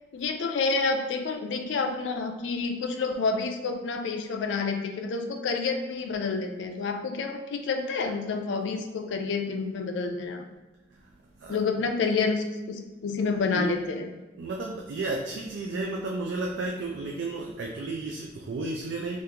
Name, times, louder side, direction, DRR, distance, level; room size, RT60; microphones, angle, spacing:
voice 1, 0.1-10.4 11.5-14.1, left 4 dB, 85° left, 5 dB, 0.4 m, -29 dB
voice 2, 10.9-11.6 13.5-13.9 14.4-19.2, right 3 dB, 80° right, 0 dB, 0.4 m, -33 dB
3.5 x 2.4 x 2.8 m, 1.2 s
head